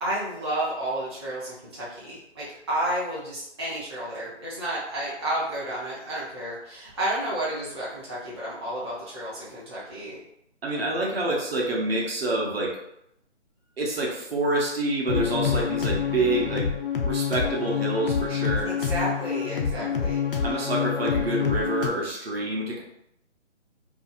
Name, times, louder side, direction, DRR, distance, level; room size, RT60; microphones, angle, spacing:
voice 1, 0.0-10.2 18.6-20.2, right 1 dB, 25° right, -10 dB, 0.4 m, -31 dB
voice 2, 10.6-12.8 13.8-16.7 17.0-18.7 19.7-20.0 20.4-22.8, right 2 dB, 55° right, -2 dB, 0.8 m, -27 dB
sound 1, 15.1-21.9, left 7 dB, 50° left, 0.4 m, -27 dB
2.7 x 2.3 x 2.5 m, 0.79 s
figure-of-eight pair, 150°, 35 cm